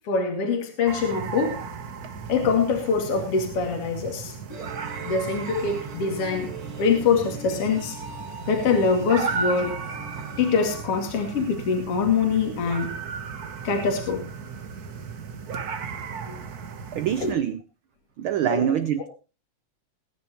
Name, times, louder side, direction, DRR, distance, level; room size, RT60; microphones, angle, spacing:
voice 1, 0.0-1.6 2.3-4.6 5.0-6.5 6.8-8.0 8.5-9.8 10.4-13.0 13.6-14.2 16.3-16.4 17.2-17.3 18.5-18.7, left 5 dB, 55° left, 3.3 m, -24 dB
sound 1, 0.9-17.3, right 5 dB, 55° right, 1.0 m, -35 dB
sound 2, 4.5-11.5, right 3 dB, 25° right, 2.1 m, -41 dB
voice 2, 16.9-17.6 18.2-19.1, right 10 dB, 85° right, 1.1 m, -25 dB
21.0 x 10.5 x 3.0 m
omnidirectional pair, 3.3 m